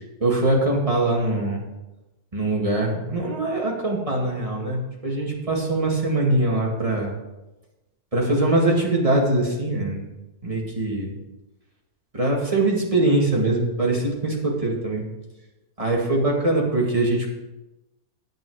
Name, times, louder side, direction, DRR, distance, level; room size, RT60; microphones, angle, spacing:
voice 1, 0.0-1.6 2.3-7.1 8.1-10.0 10.4-11.2 12.1-15.0 15.8-17.3, right 2 dB, 20° right, -2 dB, 2.1 m, -22 dB
9.2 x 8.9 x 4.8 m, 1.0 s
omnidirectional pair, 1.6 m